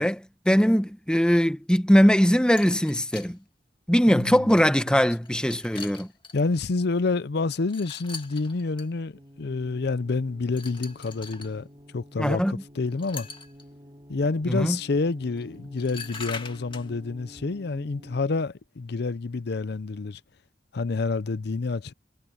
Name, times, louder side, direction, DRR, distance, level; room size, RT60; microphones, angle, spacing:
voice 1, 0.0-3.4 3.9-6.1 12.2-12.6 14.5-14.8, equal, 5° left, 1.3 m, -21 dB
sound 1, 2.6-3.3 4.2-4.3 5.2-6.4 7.7-8.9 10.5-11.5 12.9-13.6 15.4-15.5 15.8-16.9, left 5 dB, 30° left, 2.4 m, -41 dB
voice 2, 6.3-11.7 11.9-13.3 14.1-20.2 20.7-21.9, left 3 dB, 65° left, 0.6 m, -28 dB
sound 2, 9.1-18.5, equal, 25° right, 5.8 m, -50 dB
head